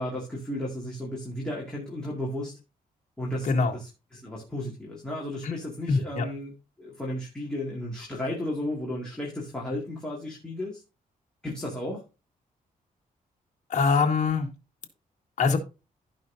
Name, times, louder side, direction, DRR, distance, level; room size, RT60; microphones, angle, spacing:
voice 1, 0.0-2.6 3.2-6.5 6.8-10.8 11.4-12.0, left 1 dB, 5° left, -5 dB, 2.3 m, -34 dB
voice 2, 5.9-6.3 13.7-14.5 15.4-15.6, left 4 dB, 50° left, 2 dB, 1.9 m, -23 dB
15.5 x 5.5 x 2.7 m, 0.30 s
wide cardioid pair, 180°, 15 cm